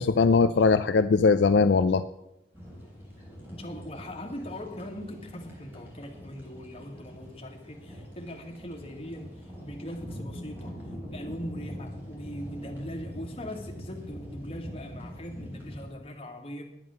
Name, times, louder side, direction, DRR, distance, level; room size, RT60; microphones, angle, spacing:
voice 1, 0.0-2.0, left 4 dB, 70° left, 10 dB, 0.4 m, -20 dB
sound 1, 2.5-15.9, equal, 10° right, 3.7 m, -43 dB
voice 2, 3.5-9.4 9.6-10.8 11.1-16.6, equal, 30° left, 1 dB, 1.8 m, -40 dB
10.5 x 9.3 x 6.2 m, 0.85 s
head